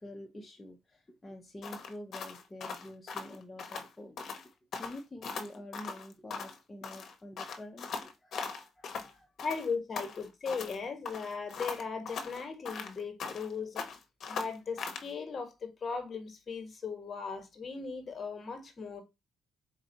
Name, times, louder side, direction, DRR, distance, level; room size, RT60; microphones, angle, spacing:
voice 1, 0.0-4.5 4.8-9.3, left 1 dB, 20° left, 0.7 m, -48 dB
sound 1, 1.6-3.9 4.2-4.4 4.7-6.6 6.8-9.1 9.4-10.8 11.1-13.5 13.8-15.1, left 5 dB, 65° left, 0.8 m, -40 dB
voice 2, 9.4-13.9 14.3-19.0, left 5 dB, 40° left, 1.3 m, -38 dB
4.3 x 2.6 x 3.9 m
cardioid pair, 90°, 0 cm